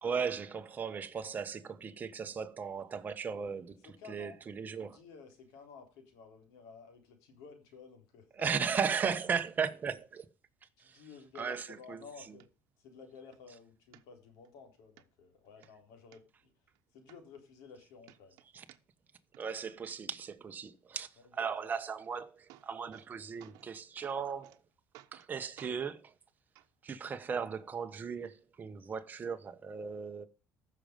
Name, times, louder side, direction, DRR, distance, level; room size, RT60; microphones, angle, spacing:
voice 1, 0.0-5.0 8.4-10.3 10.8-11.0 11.4-12.0 18.5-18.6 19.4-24.6 25.1-26.1 26.8-30.3, right 6 dB, 30° right, 1.2 m, -36 dB
voice 2, 3.8-4.4 4.7-8.5 10.8-12.5 12.8-16.5 16.9-18.4 21.3-21.7, left 5 dB, 90° left, 3.9 m, -53 dB
sound 1, 11.4-11.5 11.9-12.0 12.4-12.5 13.0-13.4 13.9-14.5 15.0-15.1 15.4-16.2 16.7-16.8 17.1-17.8 18.0-19.1 19.3-19.9 21.9-22.0 22.3-23.1 23.4-23.7 24.0-24.6 24.9-25.3 25.6-25.8 26.5-26.7 27.6-27.7, right 15 dB, 80° right, 1.0 m, -58 dB
14.5 x 6.6 x 5.2 m
cardioid pair, 130°, 6 cm